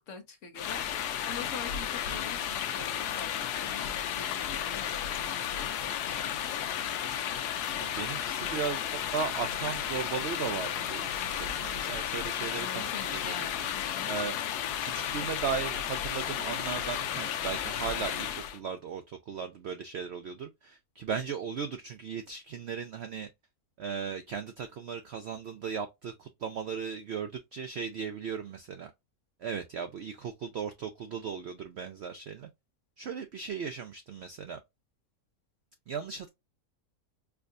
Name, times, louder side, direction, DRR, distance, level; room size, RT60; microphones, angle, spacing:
voice 1, 0.1-6.5 12.5-14.1, left 5 dB, 55° left, 1.0 m, -45 dB
sound 1, 0.6-18.6, left 9 dB, 85° left, 1.2 m, -33 dB
voice 2, 7.8-13.3 14.1-14.4 14.8-23.3 23.8-28.9 29.4-32.5 33.0-34.6 35.9-36.3, right 6 dB, 70° right, 0.6 m, -37 dB
4.7 x 2.3 x 2.5 m
omnidirectional pair, 1.7 m